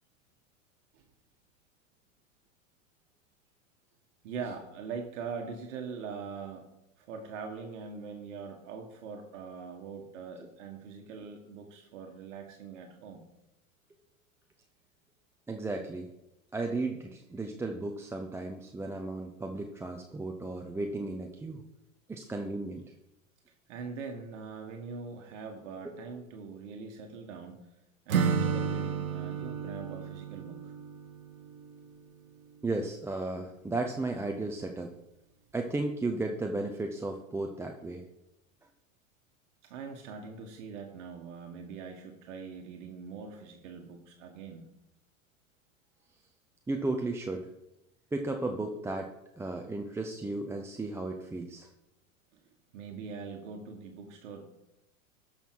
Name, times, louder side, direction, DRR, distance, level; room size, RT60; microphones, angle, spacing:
voice 1, 4.2-6.7 7.0-13.2 22.2-22.3 23.7-27.7 28.1-30.7 39.6-44.7 52.3-52.4 52.7-54.5, right 5 dB, 60° right, 3 dB, 1.4 m, -42 dB
voice 2, 15.5-16.1 16.5-21.6 22.1-22.8 25.8-26.0 32.6-34.9 35.5-38.0 46.7-47.5 48.1-49.1 49.4-51.7, right 2 dB, 5° right, 3 dB, 0.6 m, -34 dB
Acoustic guitar / Strum, 28.1-32.0, right 6 dB, 85° right, 1.0 m, -32 dB
12.5 x 5.7 x 4.6 m, 0.89 s
hypercardioid pair, 95°, 41 cm